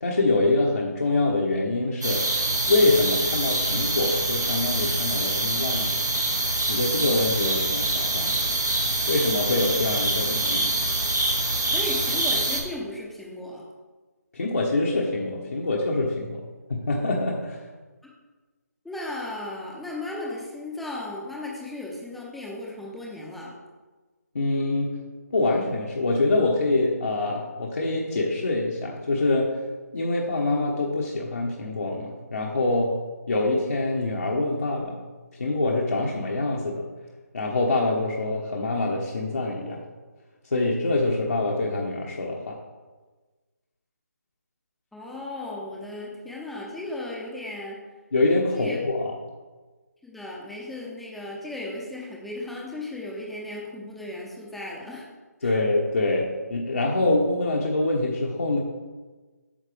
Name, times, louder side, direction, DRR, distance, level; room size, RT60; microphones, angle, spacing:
voice 1, 0.0-2.2 2.7-6.0 6.7-8.4 9.1-10.7 14.3-16.4 16.7-17.6 24.3-25.0 25.3-29.5 29.9-32.9 33.3-35.0 35.3-36.8 37.3-39.8 40.5-42.6 48.1-49.1 55.4-58.6, left 2 dB, 60° left, -3 dB, 1.2 m, -25 dB
sound 1, 2.0-12.6, right 2 dB, 85° right, 2.0 m, -25 dB
voice 2, 11.7-13.6 18.8-23.6 44.9-47.8 48.5-48.8 50.0-55.1 55.4-55.6, left 2 dB, ahead, -4 dB, 0.7 m, -35 dB
9.0 x 6.6 x 3.4 m, 1.3 s
figure-of-eight pair, 160°, 9 cm